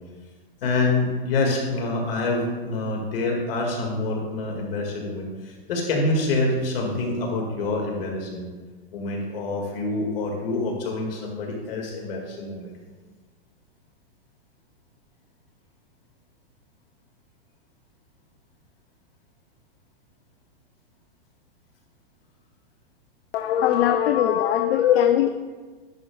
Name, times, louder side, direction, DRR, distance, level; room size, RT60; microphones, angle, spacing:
voice 1, 0.6-8.5 8.9-12.7, left 2 dB, 70° left, -1 dB, 2.0 m, -26 dB
voice 2, 23.3-25.3, left 10 dB, 85° left, 7 dB, 0.5 m, -20 dB
10.5 x 6.2 x 2.3 m, 1.3 s
supercardioid pair, 170°, 30 cm